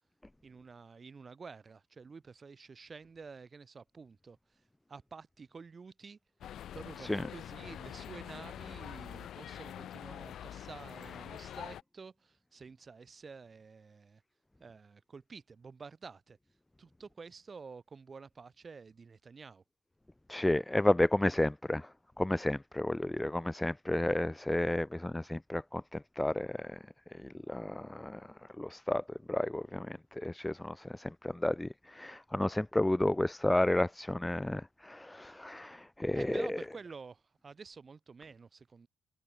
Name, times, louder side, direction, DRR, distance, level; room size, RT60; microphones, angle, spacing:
voice 1, 0.4-4.4 4.9-6.2 6.7-14.2 14.6-16.4 16.8-19.6 36.1-38.9, right 5 dB, 25° right, 4.8 m, -50 dB
sound 1, 6.4-11.8, left 10 dB, 60° left, 6.4 m, -45 dB
voice 2, 20.3-21.9 22.2-26.7 27.2-28.2 28.6-36.6, left 1 dB, 5° left, 0.7 m, -32 dB
cardioid pair, 165°, 0 cm